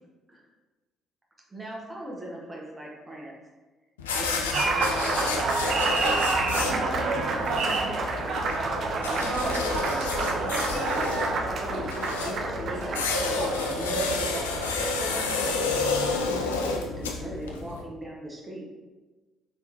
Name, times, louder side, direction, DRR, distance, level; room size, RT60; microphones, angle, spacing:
voice 1, 1.5-3.3 4.1-6.3 7.0-18.7, right 1 dB, 15° right, -3 dB, 1.0 m, -40 dB
sound 1, 4.0-17.8, left 3 dB, 75° left, 0.3 m, -30 dB
Applause, 4.5-16.3, right 3 dB, 50° right, 0.5 m, -29 dB
3.9 x 3.9 x 2.9 m, 1.3 s
figure-of-eight pair, 45°, 0 cm